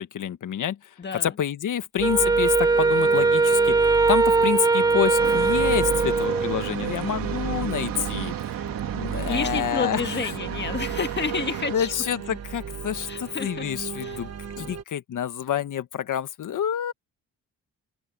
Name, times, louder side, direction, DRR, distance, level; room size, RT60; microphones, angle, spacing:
voice 1, 0.0-8.6 8.9-10.3 11.7-14.3 14.6-16.9, left 9 dB, 60° left, 1.6 m, -28 dB
voice 2, 1.0-1.3 9.3-11.9 13.1-13.7 14.0-14.2 14.6-14.7, left 5 dB, 30° left, 1.8 m, -30 dB
Wind instrument woodwind instrument, 2.0-6.7, right 3 dB, 10° right, 0.3 m, -20 dB
sound 1, 2.0-14.8, right 8 dB, 50° right, 1.6 m, -34 dB
sound 2, 5.2-11.8, right 11 dB, 75° right, 2.8 m, -35 dB
open air
cardioid pair, 90°, 35 cm